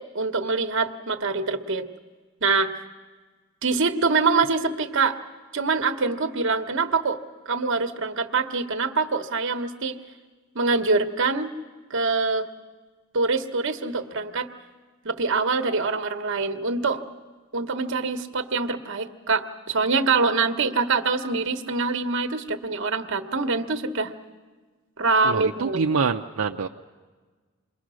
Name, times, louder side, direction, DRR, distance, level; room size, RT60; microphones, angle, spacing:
voice 1, 0.0-1.9 2.4-2.8 3.6-5.2 5.5-7.2 7.5-10.0 10.5-11.5 11.9-12.5 13.1-14.5 15.0-17.0 17.5-24.1 25.0-25.8, right 4 dB, 60° right, 8 dB, 1.2 m, -24 dB
voice 2, 25.2-26.7, right 5 dB, 85° right, 3 dB, 0.6 m, -25 dB
28.0 x 21.5 x 6.3 m, 1.4 s
head